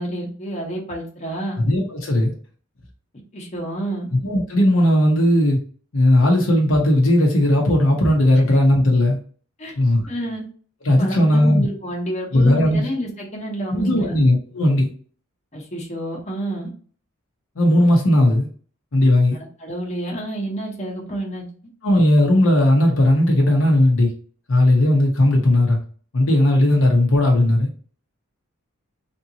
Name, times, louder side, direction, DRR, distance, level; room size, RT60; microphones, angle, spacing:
voice 1, 0.0-1.6 3.3-4.1 9.6-9.8 10.1-10.4 11.0-14.2 15.5-16.7 19.3-21.4, right 1 dB, 35° left, -2 dB, 1.0 m, -29 dB
voice 2, 1.6-2.3 4.2-5.6 5.9-9.2 9.8-10.0 10.8-11.6 12.3-12.8 13.7-14.9 17.6-18.5 18.9-19.4 21.8-24.1 24.5-25.8 26.1-27.7, left 1 dB, 65° left, 0 dB, 0.9 m, -16 dB
3.5 x 2.8 x 2.7 m, 0.43 s
head